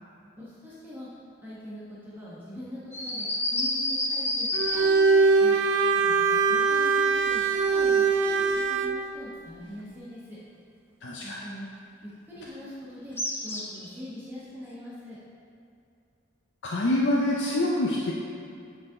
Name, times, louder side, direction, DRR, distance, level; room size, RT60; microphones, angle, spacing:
voice 1, 0.4-1.1 1.4-5.6 6.0-10.4 11.2-11.7 12.0-13.2 13.4-15.2, left 1 dB, 10° right, -9 dB, 1.0 m, -42 dB
sound 1, 2.9-5.2 13.2-13.9, left 1 dB, 10° left, 0.6 m, -29 dB
Bowed string instrument, 4.5-9.0, right 4 dB, 70° right, 0.4 m, -22 dB
voice 2, 11.0-11.4 16.6-18.1, left 1 dB, 70° left, -3 dB, 0.6 m, -25 dB
8.6 x 4.0 x 3.8 m, 2.5 s
head